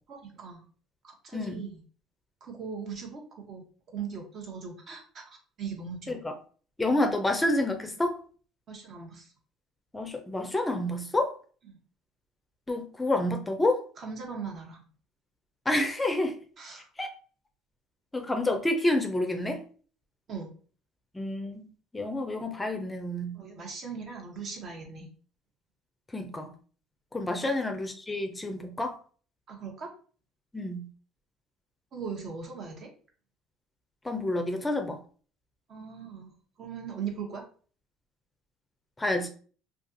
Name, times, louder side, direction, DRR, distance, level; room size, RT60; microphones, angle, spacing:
voice 1, 0.1-0.6 1.0-1.8 2.4-6.2 8.7-9.3 11.7-11.8 14.0-14.8 16.6-16.9 20.3-20.5 23.3-25.1 27.4-27.5 29.5-29.9 31.9-32.9 35.7-37.4, right 6 dB, 50° right, 0.9 m, -39 dB
voice 2, 6.8-8.2 9.9-11.3 12.7-13.8 15.7-16.3 17.0-17.1 18.1-19.6 21.1-21.6 21.9-23.4 26.1-26.5 27.1-29.0 30.5-30.9 34.0-35.0 39.0-39.3, left 1 dB, 15° left, 0.5 m, -28 dB
2.4 x 2.3 x 2.6 m
supercardioid pair, 80°, 0 cm